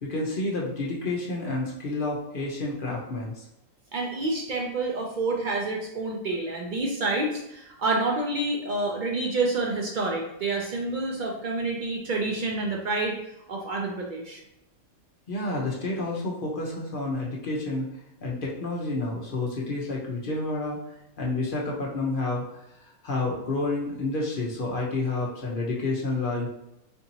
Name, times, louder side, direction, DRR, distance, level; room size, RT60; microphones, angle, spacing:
voice 1, 0.0-3.4 15.3-17.9 18.2-20.8 21.2-22.4 23.0-26.5, left 2 dB, 45° left, -3 dB, 0.7 m, -29 dB
voice 2, 3.9-13.2 13.5-14.4, right 2 dB, 85° right, -1 dB, 0.4 m, -28 dB
4.4 x 2.8 x 2.8 m, 0.83 s
omnidirectional pair, 1.5 m